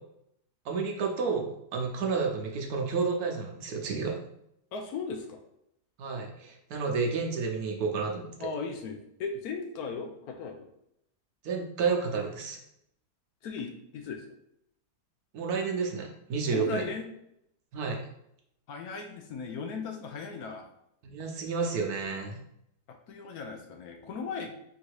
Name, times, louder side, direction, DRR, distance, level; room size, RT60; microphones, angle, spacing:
voice 1, 0.6-4.2 6.0-8.3 11.4-12.6 15.3-16.8 17.7-18.0 21.0-22.4, right 5 dB, 70° right, 1 dB, 1.2 m, -30 dB
voice 2, 4.7-5.4 8.4-10.7 13.4-14.3 16.5-17.1 18.7-20.6 22.9-24.5, left 5 dB, 70° left, 4 dB, 1.0 m, -37 dB
3.8 x 2.7 x 4.6 m, 0.77 s
omnidirectional pair, 1.8 m